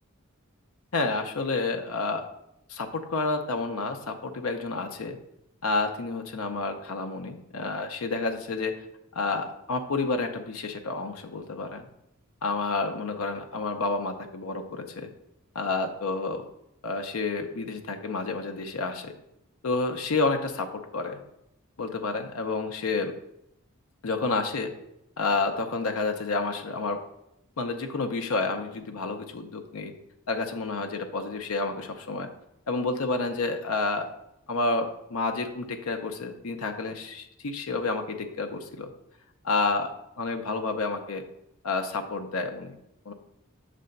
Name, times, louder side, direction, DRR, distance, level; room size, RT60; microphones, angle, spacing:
voice 1, 0.9-2.2 2.7-5.2 5.6-8.8 9.1-11.9 12.4-15.1 15.5-16.5 16.8-19.1 19.6-21.2 21.8-23.1 24.0-24.7 25.2-27.0 27.6-29.9 30.3-32.3 32.7-34.1 34.5-38.9 39.4-39.9 40.2-41.2 41.6-42.8 43.1-43.2, left 3 dB, 90° left, 5 dB, 0.6 m, -29 dB
6.5 x 3.4 x 5.2 m, 0.82 s
head